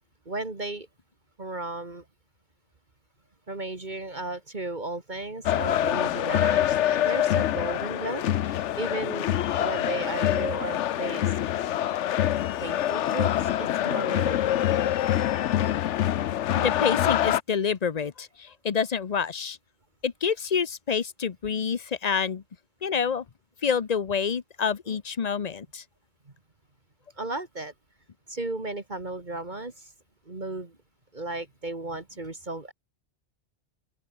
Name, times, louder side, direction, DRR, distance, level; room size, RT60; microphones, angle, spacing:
voice 1, 0.3-0.9 1.4-2.0 3.5-9.3 9.6-11.3 12.6-13.3 13.6-14.4 27.2-27.7 28.3-29.7 30.3-30.7 31.1-32.7, right 2 dB, 40° right, 2.2 m, -34 dB
sound 1, 5.5-17.4, left 11 dB, 80° left, 1.0 m, -25 dB
voice 2, 16.6-19.6 20.0-22.4 22.8-23.2 23.6-25.8, left 6 dB, 40° left, 0.8 m, -27 dB
open air
omnidirectional pair, 1.2 m